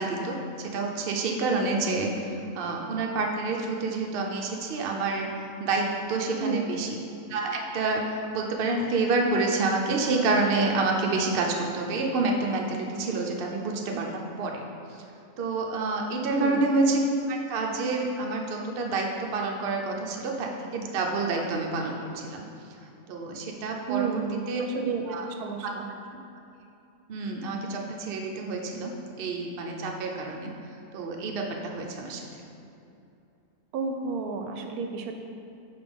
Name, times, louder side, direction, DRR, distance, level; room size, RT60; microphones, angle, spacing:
voice 1, 0.0-5.3 5.6-7.0 7.3-14.6 15.4-22.4 23.1-24.2 24.5-24.6 25.1-25.3 25.6-25.7 27.1-30.5 30.9-32.3, right 3 dB, 55° right, 0 dB, 0.7 m, -28 dB
voice 2, 6.4-6.8 16.3-16.6 23.9-24.4 24.7-25.8 33.7-35.1, right 4 dB, 85° right, 4 dB, 1.1 m, -31 dB
5.2 x 4.3 x 5.2 m, 2.7 s
omnidirectional pair, 1.6 m